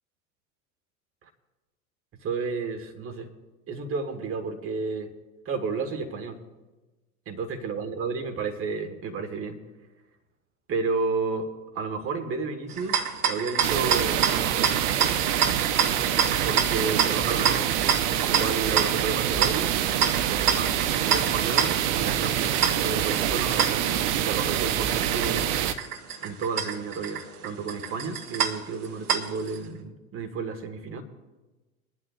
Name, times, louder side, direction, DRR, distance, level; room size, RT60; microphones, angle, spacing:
voice 1, 2.2-3.3 3.7-5.1 5.4-6.4 7.2-9.6 10.7-14.7 16.4-17.7 18.2-19.7 20.3-25.5 26.2-31.0, right 4 dB, 30° right, 6 dB, 1.7 m, -32 dB
sound 1, 12.7-29.6, right 7 dB, 80° right, 1.1 m, -29 dB
sound 2, 13.6-25.7, right 11 dB, 50° right, 0.8 m, -26 dB
22.0 x 11.0 x 2.5 m, 1.1 s
figure-of-eight pair, 80°, 44 cm